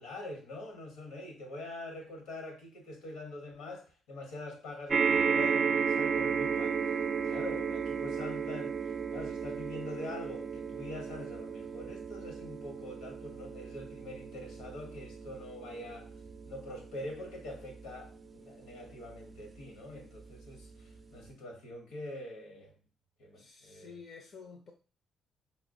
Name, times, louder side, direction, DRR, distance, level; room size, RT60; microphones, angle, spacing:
voice 1, 0.0-8.7 9.1-16.1 16.5-22.7 23.2-23.9, left 1 dB, 80° left, 3 dB, 0.9 m, -44 dB
sound 1, 4.9-19.5 20.2-20.3 20.6-20.7, right 6 dB, 45° right, 0.4 m, -34 dB
voice 2, 23.3-24.7, left 5 dB, 55° left, 3 dB, 0.5 m, -50 dB
4.4 x 2.0 x 2.6 m, 0.36 s
hypercardioid pair, 45°, 0 cm